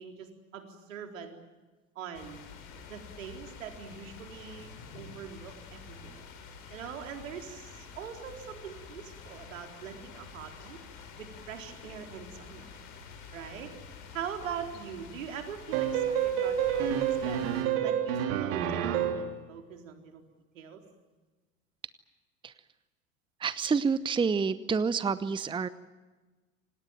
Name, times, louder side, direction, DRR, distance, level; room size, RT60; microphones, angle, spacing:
voice 1, 0.0-1.3 2.0-2.5 2.9-6.3 6.7-10.8 11.2-12.7 13.3-13.7 14.1-17.4 17.8-20.2 20.5-20.8, right 7 dB, 70° right, 4 dB, 4.2 m, -42 dB
sound 1, 2.1-17.6, left 5 dB, 50° left, 6.4 m, -48 dB
sound 2, 15.7-19.3, right 9 dB, 55° right, 3.1 m, -28 dB
voice 2, 23.4-25.7, right 5 dB, 10° right, 16 dB, 0.9 m, -28 dB
27.5 x 19.0 x 9.1 m, 1.2 s
figure-of-eight pair, 80°, 40 cm